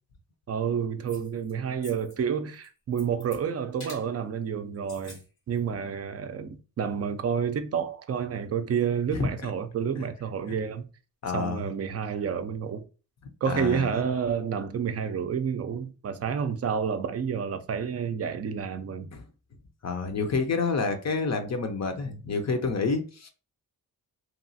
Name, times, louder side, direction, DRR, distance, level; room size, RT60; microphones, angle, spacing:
voice 1, 0.5-10.8 11.3-12.8 13.4-19.1, right 7 dB, 40° right, 0.4 m, -29 dB
sound 1, 1.1-1.5 1.8-2.2 2.5-3.4 3.8-4.1 4.7-5.2 5.6-5.7, left 2 dB, 90° left, 1.5 m, -47 dB
voice 2, 11.2-11.7 13.5-13.9 19.1-19.3 19.8-23.3, left 4 dB, 45° left, 0.6 m, -28 dB
2.9 x 2.3 x 2.6 m
cardioid pair, 90°, 38 cm